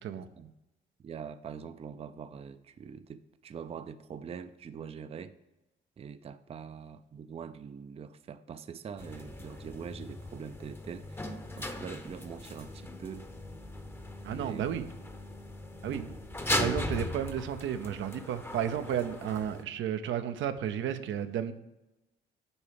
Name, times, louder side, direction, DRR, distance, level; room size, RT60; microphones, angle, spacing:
voice 1, 1.0-5.3 6.0-13.3 14.3-14.9 15.9-16.2, right 7 dB, 30° right, 11 dB, 0.4 m, -43 dB
sound 1, 9.0-19.6, left 1 dB, 10° left, 0.7 m, -38 dB
voice 2, 14.2-14.8 15.8-16.0 16.6-21.5, right 9 dB, 75° right, 9 dB, 0.6 m, -33 dB
7.0 x 4.6 x 5.1 m, 1.0 s
cardioid pair, 90°, 20 cm